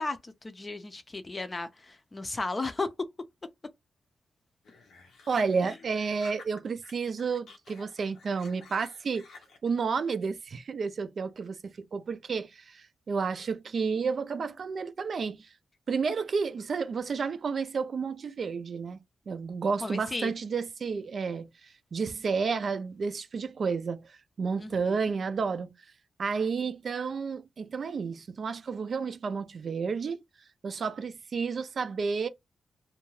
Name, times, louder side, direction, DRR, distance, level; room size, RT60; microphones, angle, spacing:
voice 1, 0.0-2.9 5.6-5.7 19.8-20.3 24.6-25.0, left 3 dB, 30° left, 0.5 m, -35 dB
sound 1, 4.6-6.9 7.2-9.7, left 4 dB, 90° left, 0.8 m, -53 dB
voice 2, 5.3-9.2 9.6-15.5 15.9-19.0 19.3-24.1 24.4-25.7 26.2-30.2 30.6-32.3, right 5 dB, 55° right, 0.4 m, -31 dB
2.3 x 2.2 x 3.1 m
cardioid pair, 85°, 0 cm